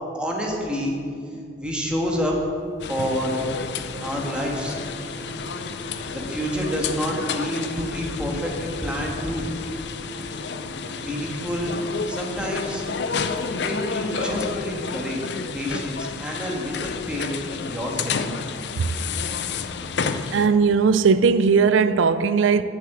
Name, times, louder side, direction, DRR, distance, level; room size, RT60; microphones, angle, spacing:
voice 1, 0.1-1.0 1.6-2.4 2.9-3.5 4.0-4.8 6.1-9.5 11.0-11.7 12.1-12.8 13.6-18.2, equal, 5° right, 1.5 m, -28 dB
sound 1, 2.8-20.5, left 5 dB, 60° left, 0.5 m, -31 dB
sound 2, 2.9-15.0, right 2 dB, 65° right, 2.2 m, -42 dB
sound 3, 4.7-14.5, left 2 dB, 85° left, 1.4 m, -43 dB
voice 2, 20.3-22.6, right 5 dB, 90° right, 0.4 m, -18 dB
7.4 x 7.2 x 8.4 m
head